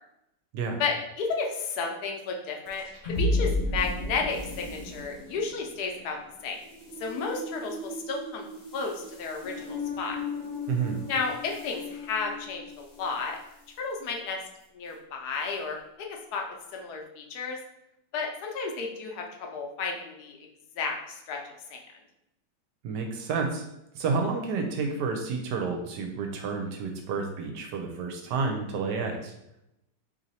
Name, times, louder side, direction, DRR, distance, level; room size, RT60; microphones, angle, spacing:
voice 1, 0.8-6.2 6.4-6.6 7.0-10.2 11.1-13.4 13.8-14.4 14.7-16.4 16.7-17.6 18.1-20.4 20.8-21.4 21.7-21.8, left 4 dB, 70° left, 2 dB, 1.1 m, -32 dB
sound 1, 2.7-13.2, left 1 dB, 30° left, 0.9 m, -34 dB
voice 2, 10.7-11.0 22.8-23.6 23.9-29.3, right 4 dB, 75° right, 3 dB, 1.2 m, -30 dB
3.1 x 2.8 x 4.0 m, 0.84 s
omnidirectional pair, 1.9 m